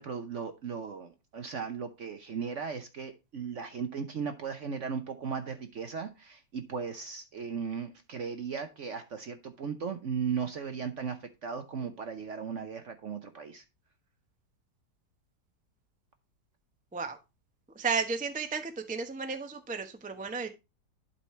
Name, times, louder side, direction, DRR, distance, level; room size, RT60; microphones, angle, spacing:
voice 1, 0.0-13.6, right 6 dB, 55° right, 8 dB, 0.9 m, -37 dB
voice 2, 17.7-20.5, right 5 dB, 10° right, 7 dB, 0.5 m, -33 dB
11.5 x 4.3 x 4.2 m, 0.25 s
omnidirectional pair, 2.0 m